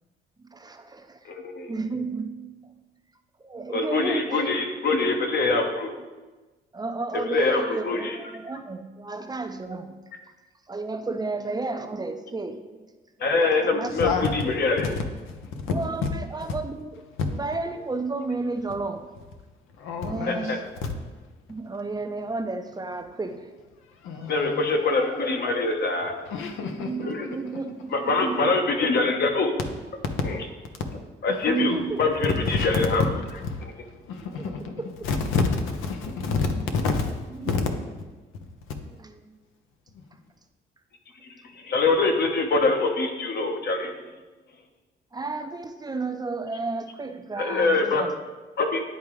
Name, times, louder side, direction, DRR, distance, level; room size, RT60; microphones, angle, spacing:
voice 1, 0.5-1.3 1.7-2.8 3.4-4.6 5.1-5.3 6.7-10.1 10.7-12.9 13.6-14.1 15.7-17.0 17.3-19.1 20.0-20.7 21.5-23.5 24.2-24.7 26.8-28.8 31.4-32.1 34.4-34.5 34.8-34.9 37.3-37.5 38.9-39.3 45.1-48.1, right 3 dB, 20° right, 6 dB, 0.5 m, -32 dB
voice 2, 1.2-1.7 3.7-5.9 7.1-8.3 13.2-14.9 20.3-20.6 24.3-26.2 27.0-27.3 27.9-29.5 30.2-30.4 31.2-33.0 33.6-33.7 41.5-43.9 47.4-48.1 48.6-48.8, left 3 dB, 55° left, 3 dB, 1.0 m, -24 dB
voice 3, 19.8-20.5 20.8-20.9 24.0-24.6 26.3-27.1 31.3-31.4 31.7-31.8 32.5-32.9 33.5-33.7 34.1-34.6 35.0-37.8, left 4 dB, 90° left, 5 dB, 0.8 m, -28 dB
10.5 x 3.6 x 3.1 m, 1.2 s
cardioid pair, 90°, 20 cm